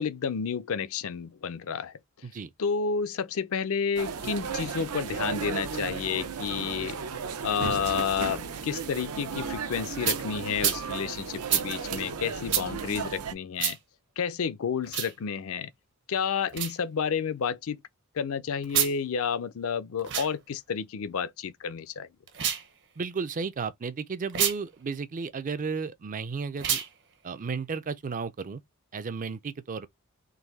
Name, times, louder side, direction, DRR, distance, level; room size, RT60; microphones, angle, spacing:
voice 1, 0.0-1.9 2.6-7.0 7.4-13.8 14.2-15.7 16.1-17.8 18.1-22.1, left 6 dB, 65° left, 0.5 m, -30 dB
sound 1, 3.9-13.3, right 6 dB, 80° right, 0.7 m, -35 dB
sound 2, 10.0-10.2 10.6-10.8 11.5-11.7 12.5-12.7 13.6-13.8 14.8-15.1 16.5-16.7 18.6-18.9 20.0-20.3 22.3-22.7 24.3-24.6 26.6-26.9, right 9 dB, 55° right, 0.9 m, -27 dB
voice 2, 23.0-26.8 27.2-28.6 28.9-29.9, right 5 dB, 35° right, 0.4 m, -33 dB
3.9 x 2.6 x 4.0 m
head